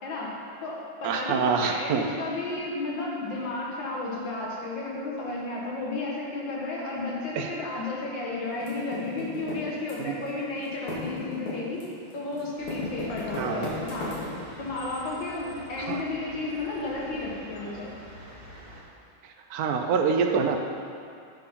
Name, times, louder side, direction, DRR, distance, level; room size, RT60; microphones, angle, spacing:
voice 1, 0.0-11.9 12.1-14.1 14.6-17.9, left 2 dB, 65° left, -3 dB, 2.2 m, -33 dB
voice 2, 1.0-2.1 7.3-7.5 10.0-10.2 13.4-13.7 15.8-16.0 19.2-20.6, right 5 dB, 85° right, 4 dB, 0.8 m, -26 dB
Typing, 8.6-10.3 10.6-14.6, left 2 dB, 80° left, 3.1 m, -35 dB
sound 1, 12.6-18.8, right 1 dB, 50° right, 2.5 m, -46 dB
9.4 x 6.8 x 5.3 m, 2.4 s
omnidirectional pair, 2.3 m